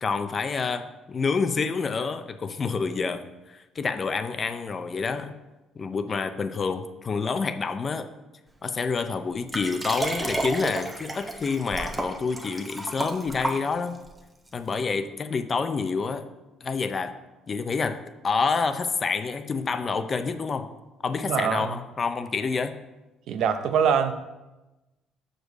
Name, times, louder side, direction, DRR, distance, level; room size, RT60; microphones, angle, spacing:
voice 1, 0.0-5.3 5.8-8.1 8.6-14.0 14.5-16.2 16.6-17.1 17.5-18.0 18.2-20.7 21.0-22.7, left 4 dB, 30° left, 9 dB, 0.5 m, -28 dB
Liquid, 9.5-14.1 14.7-14.8, right 1 dB, 10° right, 0.8 m, -31 dB
voice 2, 21.2-21.7 23.3-24.1, right 7 dB, 65° right, 9 dB, 0.6 m, -24 dB
6.3 x 5.1 x 6.3 m, 1.1 s
cardioid pair, 140°, 0 cm